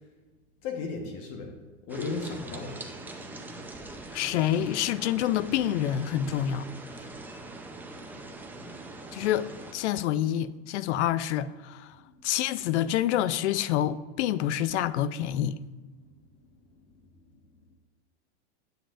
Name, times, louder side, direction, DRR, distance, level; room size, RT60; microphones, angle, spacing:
voice 1, 0.6-1.5 1.8-2.8 12.0-12.1 16.0-16.1 16.8-17.0, left 4 dB, 50° left, 1.2 m, -35 dB
sound 1, 1.9-9.7, right 2 dB, 5° right, 0.5 m, -42 dB
voice 2, 4.1-6.7 9.1-9.5 9.7-11.9 12.2-15.6, left 11 dB, 85° left, 0.5 m, -27 dB
8.5 x 8.0 x 2.5 m
supercardioid pair, 130°, 33 cm